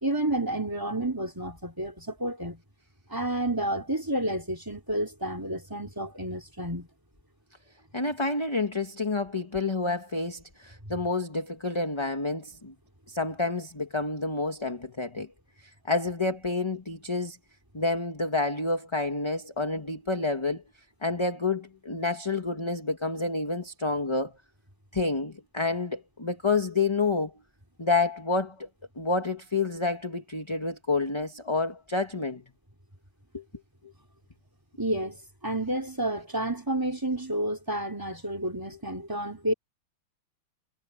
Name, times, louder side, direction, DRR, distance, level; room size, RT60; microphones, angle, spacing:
voice 1, 0.0-2.6 3.1-6.9 34.8-39.5, right 1 dB, 10° right, 3.7 m, -30 dB
voice 2, 7.9-12.7 13.1-15.3 15.6-17.4 17.7-20.6 21.0-24.3 24.9-27.3 27.8-28.7 28.9-32.4 33.3-33.4 33.8-33.9, left 3 dB, 15° left, 1.4 m, -29 dB
omnidirectional pair, 2.2 m